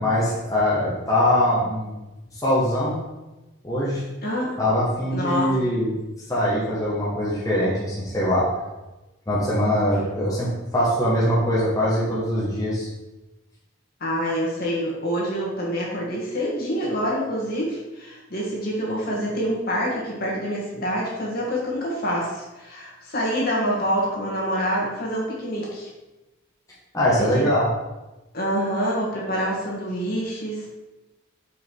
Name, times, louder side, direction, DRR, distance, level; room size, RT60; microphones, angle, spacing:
voice 1, 0.0-2.0 2.4-3.0 3.6-4.0 4.6-5.9 6.3-8.5 9.3-12.9 26.9-27.7, left 1 dB, 15° left, -8 dB, 1.4 m, -22 dB
voice 2, 4.2-4.6 5.1-5.6 14.0-25.9 27.1-27.4 28.3-30.7, equal, 45° left, -4 dB, 1.9 m, -26 dB
5.3 x 5.2 x 4.7 m, 1.1 s
head